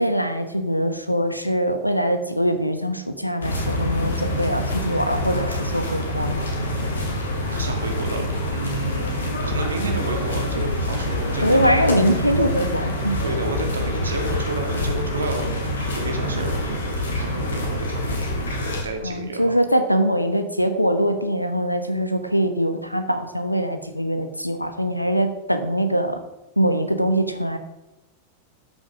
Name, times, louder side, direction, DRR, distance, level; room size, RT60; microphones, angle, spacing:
voice 1, 0.0-6.7 11.4-13.2 19.0-26.2 26.6-27.6, equal, 90° left, 9 dB, 1.0 m, -23 dB
sound 1, 3.4-18.8, left 1 dB, 70° left, 2.4 m, -26 dB
voice 2, 7.1-11.7 13.2-15.5 15.9-18.0 18.8-19.6, right 2 dB, 75° right, 4 dB, 1.9 m, -31 dB
13.0 x 6.3 x 5.0 m, 0.98 s
figure-of-eight pair, 90°, 0 cm